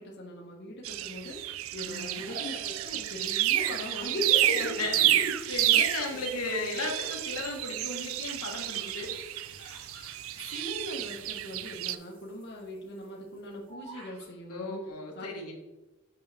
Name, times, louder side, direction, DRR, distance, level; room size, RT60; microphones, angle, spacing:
voice 1, 0.0-1.4 1.7-4.8 5.7-5.8 6.1-6.2 6.4-6.8 10.5-14.8 15.1-15.5, equal, 50° left, -2 dB, 1.1 m, -39 dB
sound 1, 0.8-12.0, right 14 dB, 65° right, 0.3 m, -30 dB
sound 2, 1.8-13.7, right 1 dB, 40° right, 1.8 m, -51 dB
voice 2, 1.9-2.2 4.4-9.1 14.5-15.5, left 2 dB, 85° left, 0 dB, 1.3 m, -35 dB
Bird vocalization bird call bird song, 3.1-4.6 5.2-5.7 6.4-7.3 7.6-11.1 11.4-11.5 11.6-12.0 12.4-14.3, right 3 dB, 85° right, 1.6 m, -52 dB
5.9 x 5.8 x 3.4 m, 1.1 s
head